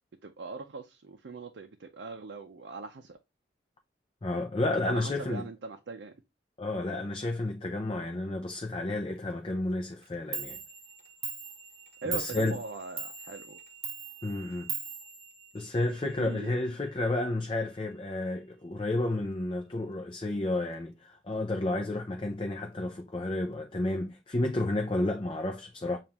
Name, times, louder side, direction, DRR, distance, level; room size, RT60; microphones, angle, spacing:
voice 1, 0.2-3.2 4.8-6.1 12.0-13.6 16.0-16.5, right 3 dB, 70° right, 0.5 m, -41 dB
voice 2, 4.2-5.4 6.6-10.6 12.0-12.6 14.2-14.7 15.5-26.0, left 2 dB, 30° left, 0.5 m, -31 dB
Clock, 10.0-10.1 10.3-16.0, right 8 dB, 35° right, 0.9 m, -40 dB
7.1 x 2.5 x 2.9 m
head